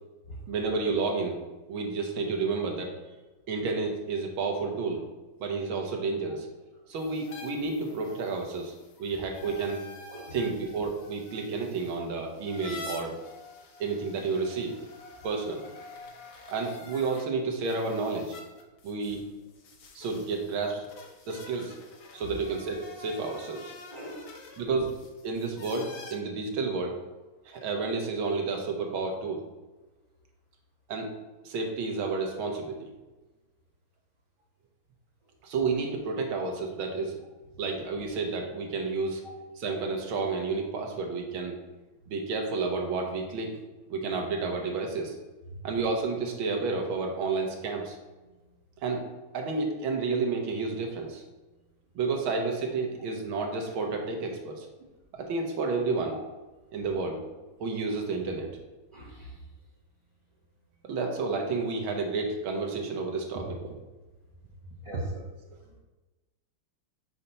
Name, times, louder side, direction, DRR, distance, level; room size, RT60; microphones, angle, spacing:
voice 1, 0.5-1.4 1.7-2.9 3.5-5.0 5.4-6.5 6.9-8.7 9.0-9.8 10.3-13.1 13.8-14.7 15.2-15.6 16.5-18.4 18.8-19.2 19.9-20.9 21.3-21.7 22.1-23.7 24.6-24.9 25.2-27.0 27.4-29.4 30.9-31.1 31.4-32.9 35.4-37.2 37.6-39.2 39.6-41.6 42.1-43.5 43.9-45.2 45.6-48.0 48.8-49.0 49.3-51.2 51.9-54.7 55.1-56.1 56.7-57.2 57.6-58.5 60.8-63.7, right 4 dB, 75° right, 2 dB, 1.8 m, -30 dB
sound 1, 6.9-17.2 17.6-26.1, left 3 dB, 70° left, 1.7 m, -47 dB
voice 2, 23.9-24.2 45.5-45.6 58.9-59.3 64.8-65.1, right 1 dB, 15° right, -7 dB, 2.1 m, -40 dB
5.6 x 4.3 x 5.4 m, 1.2 s
omnidirectional pair, 2.3 m